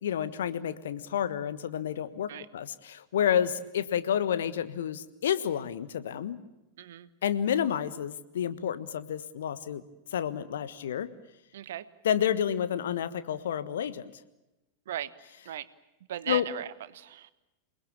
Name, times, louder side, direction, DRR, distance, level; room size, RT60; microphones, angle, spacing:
voice 1, 0.0-6.4 7.2-9.8 10.1-11.1 12.0-14.1 16.3-16.5, left 9 dB, 60° left, 13 dB, 1.4 m, -30 dB
voice 2, 6.8-7.1 11.5-11.9 14.9-15.1 15.4-15.7 16.1-17.3, right 11 dB, 60° right, 16 dB, 1.2 m, -37 dB
28.0 x 20.0 x 8.6 m, 0.98 s
figure-of-eight pair, 90°, 0 cm